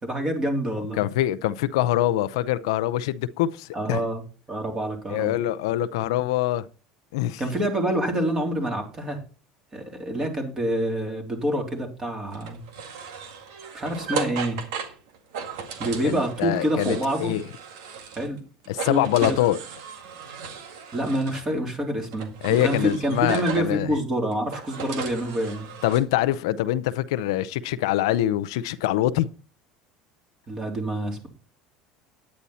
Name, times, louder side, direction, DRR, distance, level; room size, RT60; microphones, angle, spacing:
voice 1, 0.0-1.0 3.7-4.2 4.5-5.4 7.4-9.2 9.7-12.6 13.7-14.6 15.8-17.4 18.2-18.4 18.9-19.4 20.9-25.7 30.5-31.3, right 1 dB, 25° right, 3.5 m, -27 dB
voice 2, 1.0-4.1 5.1-6.7 7.1-7.4 16.0-17.4 18.7-19.6 22.4-23.9 25.8-29.3, left 13 dB, 85° left, 0.6 m, -24 dB
sound 1, 12.3-18.4 18.6-21.5 22.1-23.8 24.3-26.0, right 6 dB, 85° right, 1.9 m, -36 dB
9.8 x 9.1 x 4.2 m
supercardioid pair, 110°, 3 cm